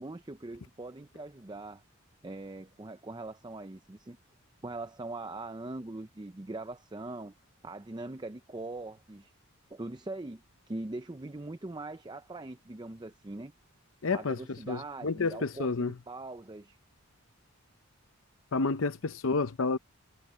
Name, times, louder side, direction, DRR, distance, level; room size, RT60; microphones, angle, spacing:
voice 1, 0.0-1.8 2.2-4.2 4.6-7.3 7.6-9.3 9.7-10.4 10.7-13.5 14.1-16.8, right 2 dB, 20° right, 0.5 m, -41 dB
voice 2, 14.0-14.4 14.7-15.9 18.5-19.8, left 4 dB, 65° left, 0.7 m, -30 dB
head